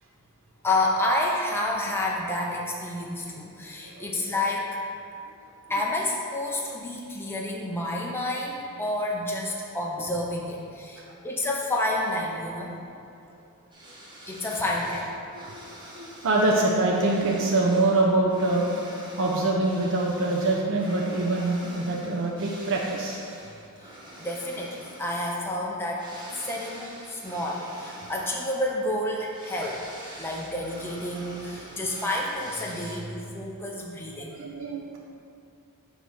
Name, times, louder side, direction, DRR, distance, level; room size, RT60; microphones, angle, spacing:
voice 1, 0.6-4.7 5.7-12.7 14.3-15.1 23.8-23.9 24.2-29.8 30.2-34.3, left 1 dB, 10° left, -3 dB, 0.5 m, -29 dB
sound 1, 13.7-33.3, right 1 dB, 20° right, 0.9 m, -45 dB
voice 2, 15.3-15.7 15.9-18.7 19.2-23.2 26.4-26.6 28.0-28.1 33.6-33.7 34.4-35.0, right 2 dB, 60° right, -3 dB, 0.6 m, -25 dB
6.3 x 3.1 x 5.3 m, 2.6 s
head